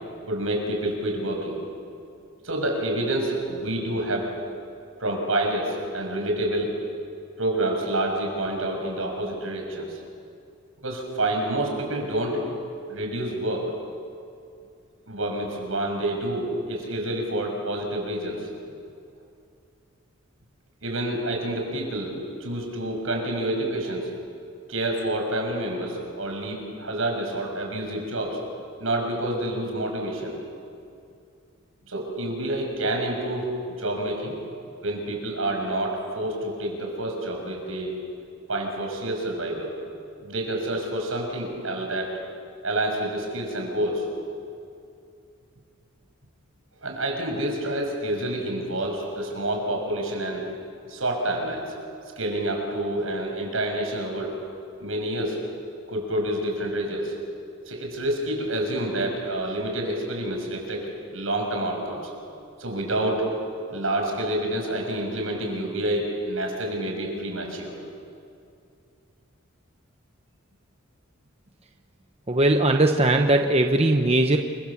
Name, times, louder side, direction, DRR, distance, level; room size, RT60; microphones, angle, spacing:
voice 1, 0.3-1.6 2.4-4.3 5.0-6.7 7.4-10.0 10.8-12.4 12.9-13.7 15.1-18.5 20.8-22.1 22.4-24.1 24.7-28.4 28.8-30.4 31.9-33.5 33.8-34.4 34.8-37.9 38.5-39.7 40.2-42.1 42.6-44.1 46.8-50.5 50.9-51.7 52.2-54.3 54.8-55.4 55.9-57.1 57.7-60.8 61.1-62.1 62.6-63.2 63.7-67.8, right 1 dB, 75° right, 2 dB, 6.3 m, -28 dB
voice 2, 72.3-74.4, right 2 dB, 30° right, 4 dB, 1.0 m, -19 dB
29.0 x 25.0 x 7.3 m, 2.5 s
head